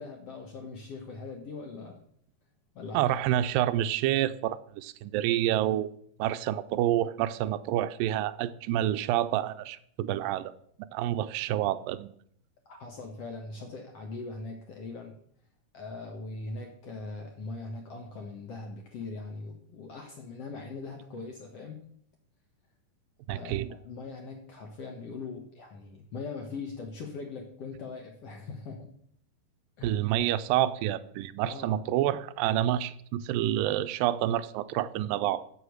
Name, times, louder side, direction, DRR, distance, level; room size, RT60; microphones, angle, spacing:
voice 1, 0.0-2.0 2.7-3.2 12.6-15.2 15.7-21.8 23.3-28.9 29.8-29.9 31.4-31.8, left 3 dB, 60° left, 2 dB, 1.7 m, -41 dB
voice 2, 2.9-5.9 6.2-10.5 10.9-12.1 23.3-23.7 29.8-35.4, right 12 dB, 80° right, 13 dB, 2.1 m, -28 dB
8.1 x 7.8 x 6.5 m, 0.65 s
omnidirectional pair, 4.2 m